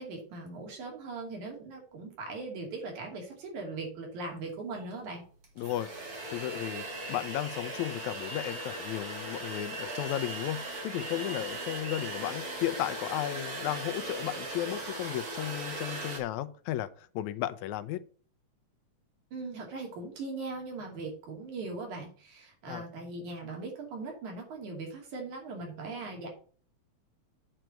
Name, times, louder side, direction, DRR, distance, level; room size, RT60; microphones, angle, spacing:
voice 1, 0.0-5.2 19.3-26.3, right 3 dB, 90° right, 4.1 m, -40 dB
sound 1, 4.9-5.0 5.4-16.2, right 2 dB, 35° right, 2.4 m, -38 dB
voice 2, 5.6-5.9 6.3-18.0 22.7-22.8, left 13 dB, 85° left, 2.0 m, -34 dB
8.9 x 4.5 x 6.4 m
omnidirectional pair, 3.3 m